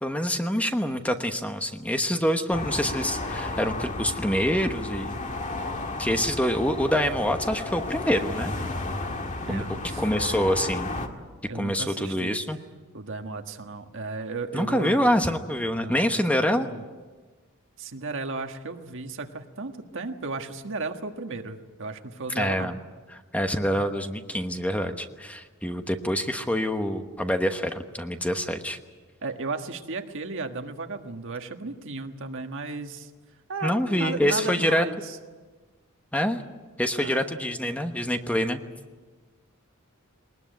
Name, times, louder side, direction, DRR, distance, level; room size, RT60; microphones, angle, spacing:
voice 1, 0.0-5.1 6.0-8.5 9.5-9.6 10.0-10.9 11.5-12.6 14.5-16.7 22.3-22.8 23.1-28.8 33.6-34.8 36.1-36.4 36.8-38.6, equal, 5° left, 6 dB, 1.1 m, -26 dB
sound 1, 2.5-11.1, left 2 dB, 35° left, 1.9 m, -33 dB
voice 2, 9.5-10.5 11.5-12.4 12.9-15.0 15.8-16.2 16.5-16.8 17.8-22.7 29.2-33.1 33.5-35.2 37.0-37.3, right 3 dB, 65° right, 5 dB, 1.6 m, -35 dB
21.0 x 20.0 x 9.3 m, 1.3 s
head